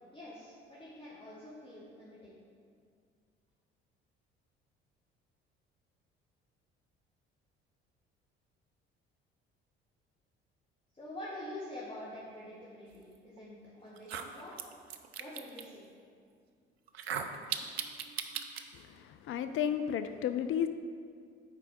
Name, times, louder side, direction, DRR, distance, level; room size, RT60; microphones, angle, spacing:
voice 1, 0.1-2.3 10.9-14.5 15.2-15.8, left 1 dB, 15° left, -7 dB, 1.8 m, -46 dB
sound 1, 13.4-13.5 14.0-15.6 16.9-18.6, right 7 dB, 80° right, 0.5 m, -38 dB
voice 2, 18.7-20.7, left 9 dB, 45° left, 9 dB, 0.4 m, -33 dB
8.6 x 4.6 x 4.7 m, 2.2 s
figure-of-eight pair, 55°, 31 cm